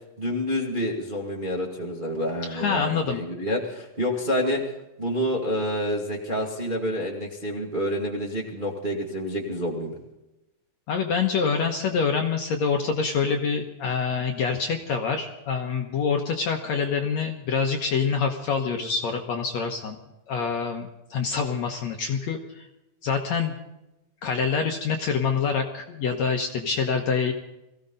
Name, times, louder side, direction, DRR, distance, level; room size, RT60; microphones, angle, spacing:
voice 1, 0.2-4.6 5.0-10.0, equal, 20° right, -1 dB, 1.4 m, -28 dB
voice 2, 2.5-3.2 10.9-20.0 20.3-22.7 23.0-23.5 24.2-27.3, left 5 dB, 65° left, 3 dB, 2.0 m, -26 dB
22.0 x 16.0 x 4.0 m, 0.94 s
omnidirectional pair, 4.2 m